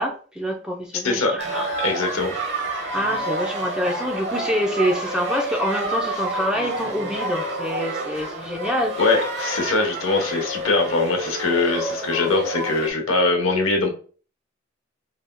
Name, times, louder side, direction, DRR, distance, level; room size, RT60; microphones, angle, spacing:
voice 1, 0.0-1.7 2.9-8.9, equal, 5° right, 0.5 m, -26 dB
voice 2, 1.0-1.3 1.8-2.4 9.0-13.9, left 3 dB, 80° left, 1.0 m, -22 dB
sound 1, 1.4-12.9, right 2 dB, 55° right, 1.1 m, -29 dB
4.8 x 3.3 x 2.2 m
head